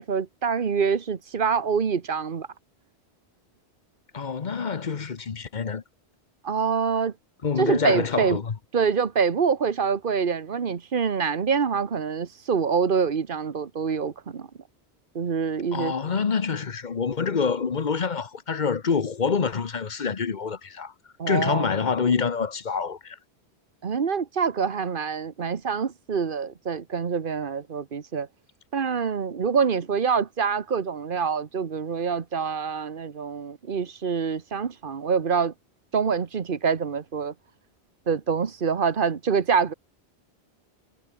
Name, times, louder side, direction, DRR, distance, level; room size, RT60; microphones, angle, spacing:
voice 1, 0.0-2.5 6.4-7.1 7.6-8.4 8.7-14.5 15.1-16.2 21.2-21.7 23.8-28.3 28.7-35.5 35.9-37.3 38.1-39.7, right 6 dB, 55° right, 1.3 m, -25 dB
voice 2, 4.1-5.8 7.4-8.5 15.7-20.9 21.3-23.2, left 5 dB, 45° left, 1.1 m, -26 dB
omnidirectional pair, 1.1 m